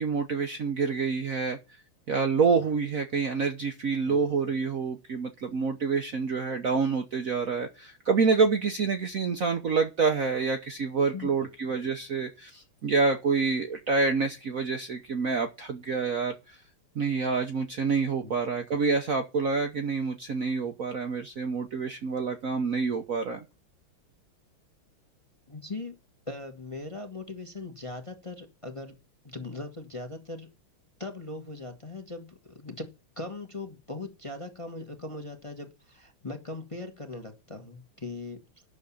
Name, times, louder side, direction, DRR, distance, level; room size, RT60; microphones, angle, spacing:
voice 1, 0.0-1.6 2.1-16.6 16.9-23.4, right 5 dB, 50° right, 5 dB, 1.1 m, -27 dB
voice 2, 11.1-11.5 18.2-18.3 25.5-25.9 26.3-28.9 29.2-30.5 31.0-32.9 33.2-38.4, left 2 dB, 20° left, 4 dB, 1.1 m, -39 dB
10.5 x 6.4 x 7.1 m, 0.28 s
omnidirectional pair, 2.4 m